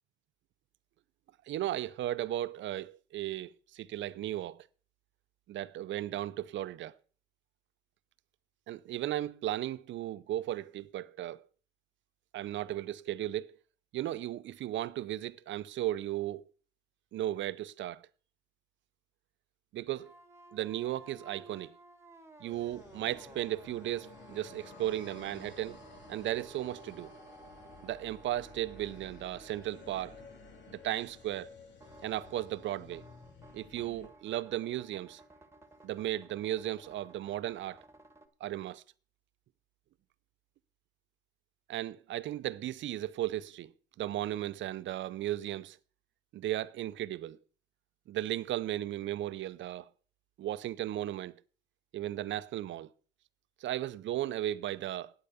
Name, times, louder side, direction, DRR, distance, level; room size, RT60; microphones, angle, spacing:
voice 1, 1.5-4.7 5.5-6.9 8.7-11.4 12.3-13.6 13.9-16.4 17.1-18.0 19.7-20.1 20.5-21.7 22.4-25.8 26.1-27.1 27.8-30.2 30.7-31.5 32.0-33.1 33.5-35.2 35.8-37.8 38.4-38.8 41.7-43.7 44.0-45.8 46.3-47.4 48.1-49.9 50.4-51.4 51.9-52.9 53.6-55.1, right 13 dB, 70° right, 0.6 m, -35 dB
sound 1, 20.0-38.3, right 2 dB, 15° right, 1.6 m, -56 dB
sound 2, 22.5-34.1, left 4 dB, 65° left, 2.6 m, -54 dB
9.1 x 8.5 x 6.8 m
cardioid pair, 90°, 20 cm